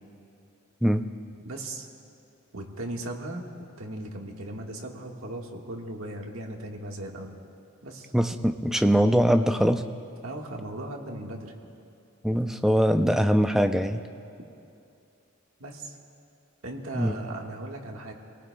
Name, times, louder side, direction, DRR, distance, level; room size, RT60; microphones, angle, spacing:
voice 1, 1.4-1.9 2.5-7.3 7.8-8.1 10.2-11.5 15.6-16.0 16.6-18.1, right 1 dB, 80° right, 1 dB, 1.6 m, -37 dB
voice 2, 8.1-9.8 12.2-14.0 16.9-17.1, equal, ahead, 7 dB, 0.4 m, -22 dB
26.5 x 18.5 x 2.2 m, 2.6 s
head